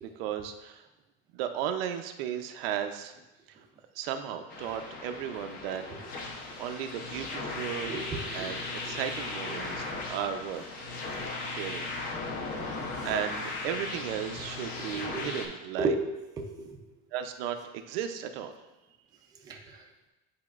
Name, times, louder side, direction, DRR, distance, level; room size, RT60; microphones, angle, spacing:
voice 1, 0.0-0.8 1.3-3.1 4.0-5.8 6.3-8.0 8.3-10.6 11.4-11.9 13.0-15.9 17.1-18.5, right 9 dB, 80° right, 7 dB, 0.6 m, -35 dB
sound 1, 4.5-15.5, left 3 dB, 30° left, 0.7 m, -37 dB
voice 2, 7.9-9.0 9.5-9.8 14.9-15.3 15.8-16.0 16.4-16.8 19.4-19.8, right 3 dB, 15° right, 0 dB, 0.4 m, -34 dB
9.6 x 4.2 x 2.4 m, 1.0 s
cardioid pair, 175°, 29 cm